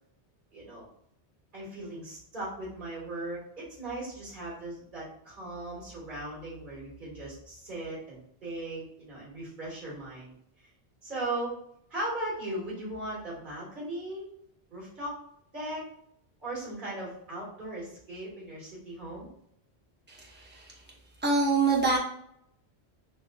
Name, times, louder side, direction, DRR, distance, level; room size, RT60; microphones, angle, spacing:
voice 1, 0.5-0.9 1.5-10.7 11.0-11.6 11.9-14.3 14.7-15.3 15.5-16.0 16.4-19.3, right 1 dB, 45° right, -6 dB, 1.8 m, -38 dB
voice 2, 20.1-20.8 21.2-22.0, right 3 dB, 10° right, -3 dB, 0.7 m, -26 dB
4.2 x 2.9 x 2.3 m, 0.72 s
omnidirectional pair, 1.1 m